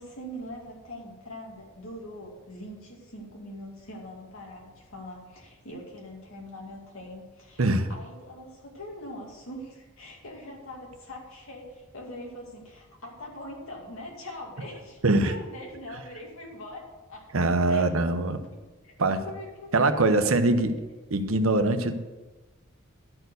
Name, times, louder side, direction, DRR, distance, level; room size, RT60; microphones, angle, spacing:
voice 1, 0.0-7.6 7.9-17.3 17.7-18.4 18.8-18.9 19.3-20.6, left 1 dB, 75° left, -1 dB, 2.4 m, -42 dB
voice 2, 7.6-7.9 15.0-15.3 17.3-18.4 19.0-19.2 19.7-20.8 21.1-21.9, right 2 dB, 85° right, 9 dB, 0.9 m, -23 dB
12.0 x 4.6 x 8.0 m, 1.2 s
head